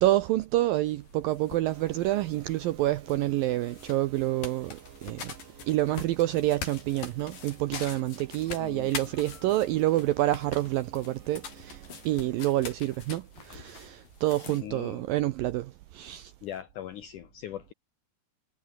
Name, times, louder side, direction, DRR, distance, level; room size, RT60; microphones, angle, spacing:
voice 1, 0.0-5.3 5.7-16.3, right 15 dB, 85° right, 2.0 m, -28 dB
sound 1, 0.8-14.6, left 6 dB, 55° left, 5.2 m, -44 dB
sound 2, 1.6-12.7, right 9 dB, 55° right, 3.6 m, -52 dB
voice 2, 8.6-8.9 14.6-15.1 16.4-17.7, left 11 dB, 75° left, 1.9 m, -40 dB
omnidirectional pair, 5.0 m